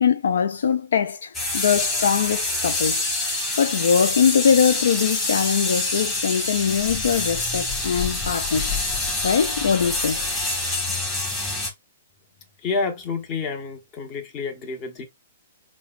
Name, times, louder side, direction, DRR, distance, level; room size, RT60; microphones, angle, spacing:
voice 1, 0.0-3.0 3.6-8.8 9.2-10.2, left 7 dB, 75° left, 0.3 m, -22 dB
sound 1, 1.3-11.7, left 2 dB, 15° left, 1.6 m, -26 dB
voice 2, 12.6-15.0, left 4 dB, 30° left, 1.1 m, -29 dB
5.6 x 2.2 x 2.4 m
hypercardioid pair, 130°, 0 cm